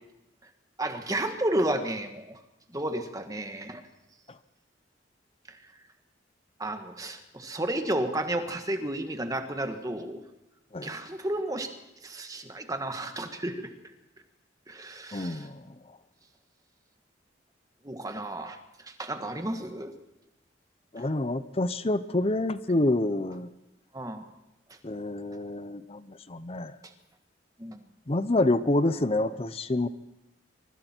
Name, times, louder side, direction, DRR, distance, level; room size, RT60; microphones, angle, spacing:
voice 1, 0.8-2.4 2.7-3.8 5.5-5.6 6.6-10.2 10.8-11.7 12.0-13.7 14.7-15.5 17.8-18.6 18.8-19.9 23.9-24.3 27.6-27.8, right 1 dB, 20° right, 6 dB, 1.6 m, -32 dB
voice 2, 15.1-15.6 20.9-23.5 24.8-26.8 28.1-29.9, left 2 dB, 30° left, 14 dB, 0.7 m, -27 dB
24.5 x 24.0 x 4.5 m, 0.93 s
head